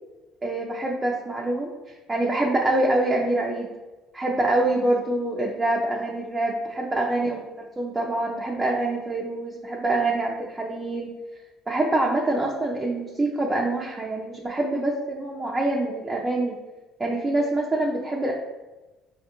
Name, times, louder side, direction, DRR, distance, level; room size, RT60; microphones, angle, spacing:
voice 1, 0.4-3.7 4.1-11.1 11.7-16.6 17.0-18.3, right 2 dB, 20° right, -2 dB, 0.5 m, -25 dB
5.5 x 2.2 x 2.9 m, 1.1 s
cardioid pair, 105°, 0 cm